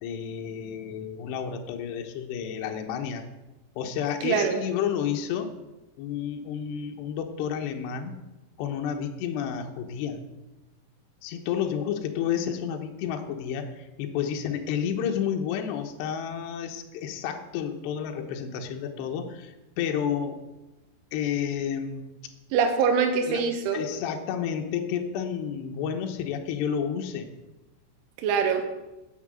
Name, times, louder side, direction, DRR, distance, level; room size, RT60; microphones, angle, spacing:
voice 1, 0.0-3.3 3.8-5.5 6.0-8.1 8.6-10.2 11.2-20.4 21.1-22.1 23.3-23.5 23.7-27.3, left 8 dB, 75° left, 4 dB, 3.0 m, -30 dB
voice 2, 4.2-4.6 22.5-23.8 28.2-28.6, right 6 dB, 80° right, 5 dB, 3.6 m, -24 dB
10.0 x 8.4 x 7.7 m, 1.0 s
omnidirectional pair, 5.5 m